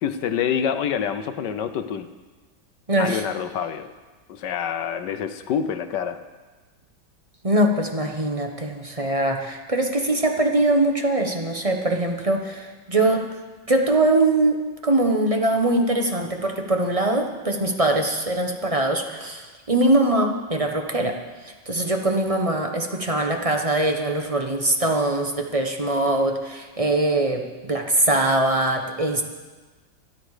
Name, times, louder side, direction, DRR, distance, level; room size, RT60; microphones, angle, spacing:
voice 1, 0.0-2.1 3.0-3.9 4.3-6.2, left 8 dB, 70° left, 10 dB, 1.4 m, -26 dB
voice 2, 2.9-3.2 7.4-13.3 13.7-21.2 21.4-29.2, right 2 dB, 20° right, 3 dB, 1.0 m, -22 dB
24.0 x 10.5 x 4.9 m, 1.3 s
omnidirectional pair, 2.1 m